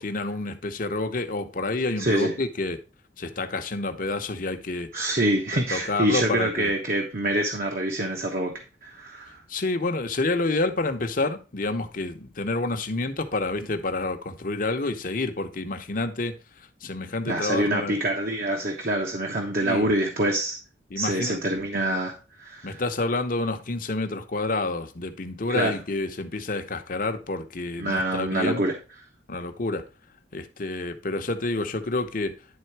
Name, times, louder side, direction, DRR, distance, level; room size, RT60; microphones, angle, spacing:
voice 1, 0.0-2.8 3.2-5.2 5.5-6.7 9.5-18.0 19.6-19.9 20.9-21.6 22.6-28.7 29.3-29.8 30.3-32.3, left 2 dB, 50° left, 0.9 m, -29 dB
voice 2, 2.0-2.3 4.9-8.5 8.8-9.4 17.3-20.6 21.0-22.8 25.5-25.7 27.8-28.7, right 1 dB, 50° right, 1.1 m, -26 dB
10.5 x 3.8 x 4.6 m
head